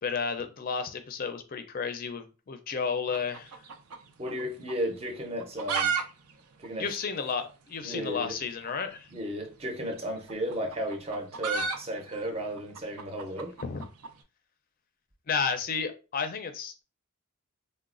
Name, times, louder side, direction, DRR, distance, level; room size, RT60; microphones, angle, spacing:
voice 1, 0.0-3.5 6.8-9.1 13.6-13.9 15.3-16.8, left 5 dB, 40° left, 0.4 m, -32 dB
sound 1, 3.1-4.4 4.7-4.8 5.3-6.0 6.3-6.4 6.6-6.7 7.3-7.4 8.6-8.8 9.9-14.1, right 5 dB, 90° right, 0.5 m, -32 dB
voice 2, 4.2-5.9 6.6-6.9 7.8-8.4 9.1-13.6, equal, 25° right, 0.6 m, -34 dB
3.9 x 2.1 x 2.4 m
head